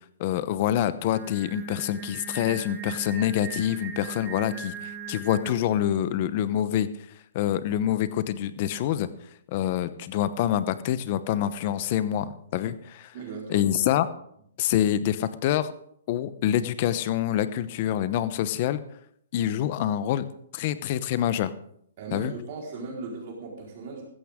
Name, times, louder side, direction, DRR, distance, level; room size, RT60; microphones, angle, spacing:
voice 1, 0.2-6.9 7.3-9.1 9.5-13.1 13.5-14.1 14.6-15.7 16.1-18.8 19.3-20.3 20.5-21.5 22.1-22.3, left 11 dB, 35° left, 14 dB, 0.8 m, -26 dB
Singing, 1.1-5.9, right 5 dB, 10° right, 1.7 m, -39 dB
voice 2, 13.1-13.7 22.0-24.0, right 4 dB, 40° right, -2 dB, 4.3 m, -37 dB
15.0 x 14.5 x 3.7 m, 0.69 s
hypercardioid pair, 165°, 0 cm